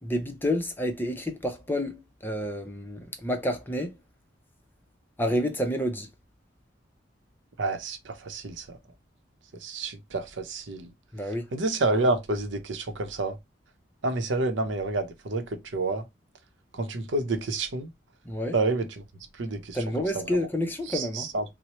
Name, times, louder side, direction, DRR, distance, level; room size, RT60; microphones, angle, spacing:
voice 1, 0.0-3.9 5.2-6.1 11.1-11.5 18.2-18.6 19.7-21.3, equal, 10° left, 0.5 m, -29 dB
voice 2, 7.6-8.8 9.6-10.9 11.5-13.4 14.0-16.0 16.7-17.9 18.5-18.9 19.4-19.8 20.1-20.4 20.9-21.4, right 2 dB, 80° right, 0.7 m, -29 dB
4.2 x 2.0 x 3.0 m
head